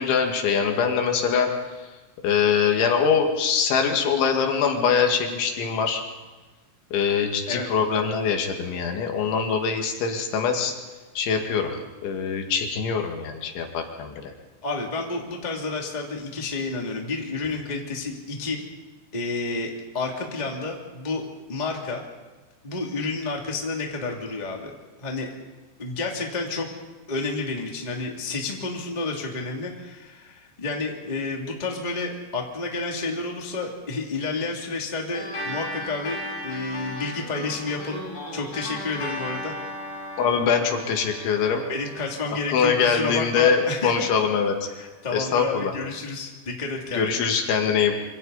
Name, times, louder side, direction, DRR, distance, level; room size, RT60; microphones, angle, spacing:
voice 1, 0.0-1.8 2.2-6.0 6.9-10.7 11.2-11.8 12.0-14.3 40.2-41.6 42.5-44.7 45.1-45.7 46.9-47.9, left 6 dB, 85° left, 3 dB, 4.6 m, -23 dB
voice 2, 14.6-18.6 19.1-22.0 22.6-24.7 25.0-25.3 25.8-26.7 27.1-38.0 38.3-39.5 41.7-44.1 44.7-47.1, left 3 dB, 15° left, 0 dB, 1.7 m, -30 dB
sound 1, 35.1-44.0, left 1 dB, 55° left, 9.1 m, -36 dB
26.5 x 25.5 x 4.1 m, 1.2 s
omnidirectional pair, 5.2 m